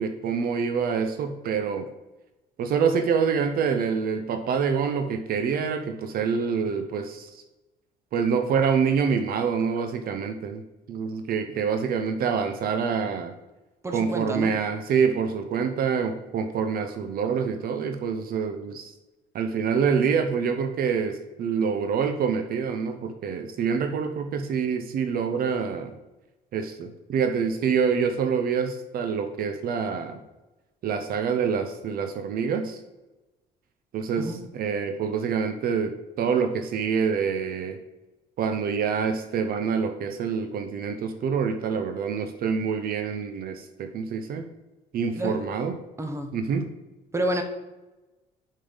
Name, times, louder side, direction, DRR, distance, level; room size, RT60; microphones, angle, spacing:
voice 1, 0.0-1.9 2.6-7.4 8.1-10.6 10.9-13.3 13.9-18.9 19.3-26.0 26.5-30.2 30.8-32.8 33.9-37.8 38.4-44.5 44.9-45.7 46.3-46.7, right 6 dB, 60° right, 7 dB, 0.8 m, -26 dB
voice 2, 13.8-14.5 34.2-34.4 45.2-45.4 46.0-46.3 47.1-47.4, right 1 dB, 15° right, 6 dB, 1.1 m, -29 dB
5.4 x 5.1 x 5.5 m, 1.1 s
cardioid pair, 110°, 17 cm